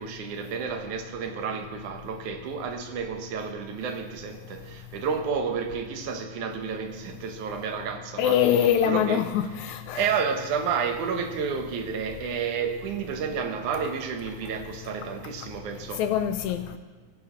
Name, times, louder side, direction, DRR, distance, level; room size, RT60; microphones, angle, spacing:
voice 1, 0.0-9.2 9.9-16.0, right 6 dB, 70° right, 2.5 m, -31 dB
voice 2, 8.2-10.0 16.0-16.8, left 9 dB, 80° left, 1.9 m, -24 dB
18.5 x 10.0 x 5.1 m
omnidirectional pair, 3.7 m